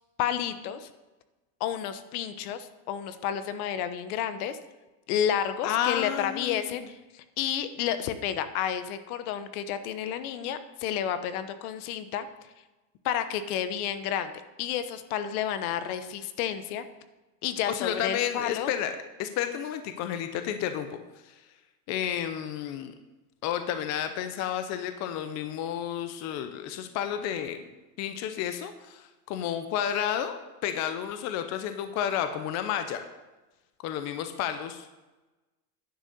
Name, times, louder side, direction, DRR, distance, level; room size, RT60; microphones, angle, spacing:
voice 1, 0.2-0.9 1.6-4.6 5.1-12.3 13.0-14.3 14.6-16.8 17.4-18.7, left 9 dB, 70° left, 11 dB, 1.0 m, -31 dB
voice 2, 5.6-6.8 17.7-18.9 19.2-21.0 21.2-21.3 21.9-22.9 23.4-27.6 28.0-30.3 30.6-33.1 33.8-34.9, left 10 dB, 35° left, 8 dB, 0.6 m, -31 dB
10.5 x 6.6 x 6.7 m, 1.1 s
cardioid pair, 165°, 46 cm